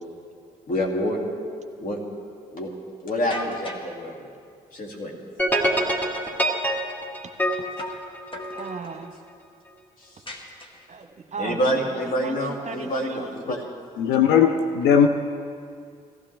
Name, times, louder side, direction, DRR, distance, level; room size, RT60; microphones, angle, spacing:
voice 1, 0.7-1.2 1.8-2.0 2.5-2.7 3.0-4.3 4.7-5.1 11.4-13.6, equal, 50° left, 0 dB, 2.4 m, -27 dB
sound 1, 3.3-4.0 5.5-6.4 7.8-8.1 8.3-9.0 10.3-11.0, left 1 dB, 30° left, 1.8 m, -37 dB
sound 2, 5.4-8.8, equal, 10° left, 2.1 m, -25 dB
voice 2, 7.2-7.6 8.5-9.2 10.9-11.6 12.2-12.4 12.6-13.3, right 5 dB, 40° right, 6 dB, 1.1 m, -36 dB
voice 3, 14.0-15.1, left 7 dB, 70° left, 6 dB, 0.7 m, -18 dB
17.5 x 15.0 x 3.4 m, 2.3 s
hypercardioid pair, 45°, 18 cm